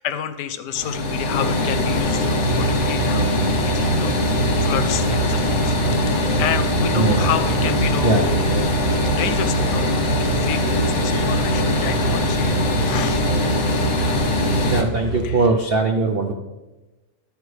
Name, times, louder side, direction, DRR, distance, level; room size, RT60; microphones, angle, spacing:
voice 1, 0.0-8.5 9.1-13.2 15.2-15.4, left 9 dB, 75° left, 12 dB, 1.2 m, -30 dB
sound 1, 0.7-14.8, left 1 dB, 45° left, 1.2 m, -21 dB
sound 2, 2.0-15.2, right 4 dB, 20° right, 2.1 m, -27 dB
voice 2, 7.0-7.3 8.0-8.3 11.1-11.4 13.6-16.3, right 3 dB, 70° right, 4 dB, 0.5 m, -22 dB
12.0 x 8.3 x 3.3 m, 1.1 s
omnidirectional pair, 1.9 m